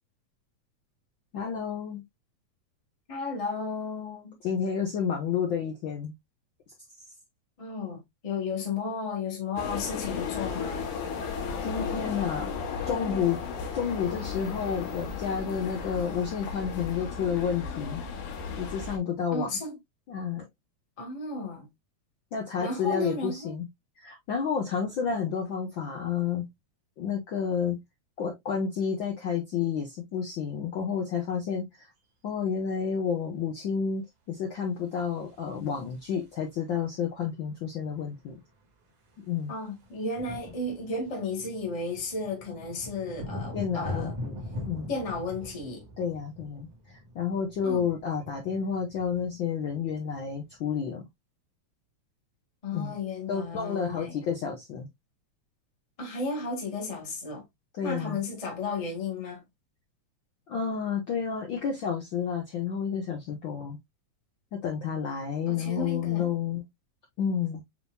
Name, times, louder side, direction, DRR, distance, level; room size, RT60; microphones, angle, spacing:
voice 1, 1.3-2.0 4.4-6.1 11.6-12.5 12.8-13.4 13.7-18.0 18.6-19.5 20.1-20.4 22.3-23.7 24.0-26.5 27.0-27.8 28.2-31.7 32.2-38.4 39.2-39.5 43.5-44.4 44.7-44.9 46.0-46.7 47.1-51.0 52.7-53.0 53.3-54.9 57.8-58.2 60.5-63.8 64.5-66.6 67.2-67.6, left 7 dB, 60° left, 1.3 m, -30 dB
voice 2, 3.1-4.4 7.6-10.9 19.3-19.8 21.0-21.7 22.6-23.5 39.5-44.1 44.9-45.8 47.6-47.8 52.6-54.2 56.0-57.4 57.8-59.4 65.5-66.4, left 3 dB, 20° left, 1.0 m, -34 dB
sound 1, 9.6-19.0, left 6 dB, 90° left, 2.5 m, -35 dB
sound 2, 35.0-36.5 37.8-37.9 38.1-38.3 38.6-50.7, left 2 dB, 75° right, 2.9 m, -42 dB
7.1 x 2.9 x 2.2 m
omnidirectional pair, 3.3 m